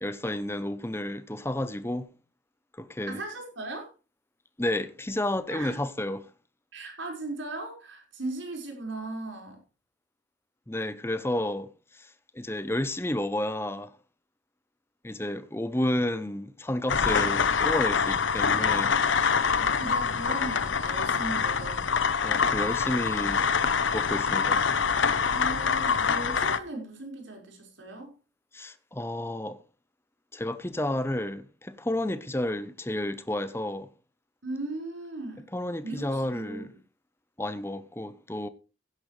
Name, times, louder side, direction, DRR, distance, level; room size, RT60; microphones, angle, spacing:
voice 1, 0.0-2.1 2.8-3.2 4.6-6.3 10.7-13.9 15.0-19.0 22.2-23.5 23.9-24.6 28.5-29.6 30.3-33.9 35.5-36.7 37.4-38.5, left 1 dB, 15° left, 0.8 m, -31 dB
voice 2, 3.1-3.9 5.5-5.8 6.7-9.6 19.6-22.0 25.3-28.1 34.4-35.4 35.8-36.7, right 2 dB, 80° right, 5.1 m, -37 dB
sound 1, 16.9-26.6, left 6 dB, 80° left, 0.8 m, -25 dB
16.0 x 10.5 x 3.3 m
head